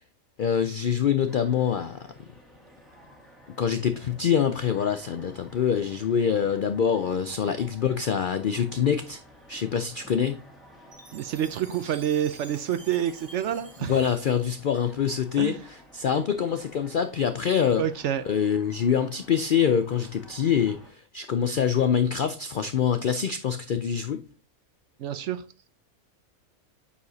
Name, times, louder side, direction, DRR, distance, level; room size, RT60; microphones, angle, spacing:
voice 1, 0.4-2.0 3.6-9.2 9.5-10.4 13.8-17.8 18.3-24.2, left 8 dB, 75° left, 0.4 m, -25 dB
sound 1, 1.3-20.9, equal, ahead, 1.4 m, -53 dB
Chime, 10.9-15.2, right 2 dB, 25° right, 1.3 m, -50 dB
voice 2, 11.1-14.0 15.4-15.6 17.8-18.2 25.0-25.4, right 10 dB, 65° right, 0.8 m, -28 dB
8.3 x 4.8 x 2.7 m
omnidirectional pair, 1.5 m